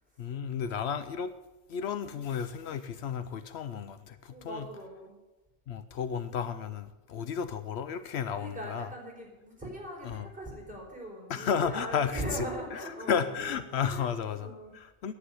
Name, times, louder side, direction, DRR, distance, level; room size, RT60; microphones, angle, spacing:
voice 1, 0.2-1.3 1.7-4.7 5.7-8.9 10.0-10.3 11.3-12.5 12.7-12.8 13.1-14.5 14.7-15.1, left 7 dB, 75° left, 11 dB, 0.9 m, -33 dB
voice 2, 4.3-5.2 8.3-14.7, right 1 dB, 5° right, -3 dB, 4.4 m, -40 dB
10.5 x 8.5 x 9.6 m, 1.1 s
omnidirectional pair, 1.1 m